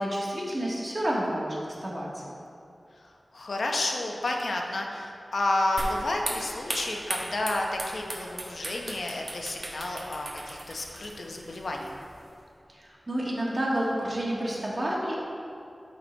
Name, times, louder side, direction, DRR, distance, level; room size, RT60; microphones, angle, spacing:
voice 1, 0.0-2.2 12.7-15.2, right 1 dB, 35° right, -5 dB, 1.9 m, -30 dB
voice 2, 3.3-12.0, left 2 dB, 85° left, 1 dB, 0.8 m, -31 dB
sound 1, 5.8-12.3, right 1 dB, 60° right, 1.3 m, -38 dB
12.5 x 4.3 x 4.4 m, 2.5 s
wide cardioid pair, 85°, 0 cm